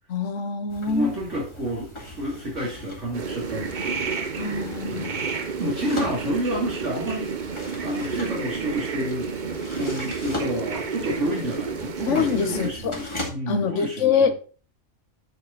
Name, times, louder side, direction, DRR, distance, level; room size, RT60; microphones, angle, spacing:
voice 1, 0.1-1.1 4.4-5.1 12.1-13.0 13.5-14.3, left 6 dB, 75° left, 1.3 m, -24 dB
sound 1, 0.7-13.3, left 1 dB, 25° left, 2.1 m, -39 dB
voice 2, 0.9-4.1 4.9-7.4 7.8-9.3 9.7-14.3, equal, 70° right, 3.0 m, -30 dB
sound 2, 3.1-12.7, right 5 dB, 40° right, 0.9 m, -31 dB
9.0 x 6.3 x 3.9 m
omnidirectional pair, 1.3 m